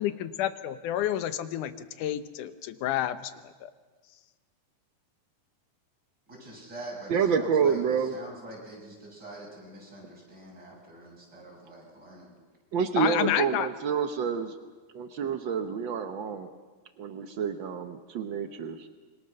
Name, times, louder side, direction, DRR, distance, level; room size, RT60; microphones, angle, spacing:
voice 1, 0.0-3.3 3.6-3.7 13.0-13.7, left 12 dB, 85° left, 12 dB, 2.4 m, -29 dB
voice 2, 6.3-12.3, right 1 dB, 30° right, -3 dB, 7.6 m, -45 dB
voice 3, 7.1-8.1 12.7-14.5 14.9-16.5 17.0-18.9, right 6 dB, 75° right, 7 dB, 1.1 m, -28 dB
26.5 x 23.5 x 6.5 m, 1.4 s
omnidirectional pair, 3.5 m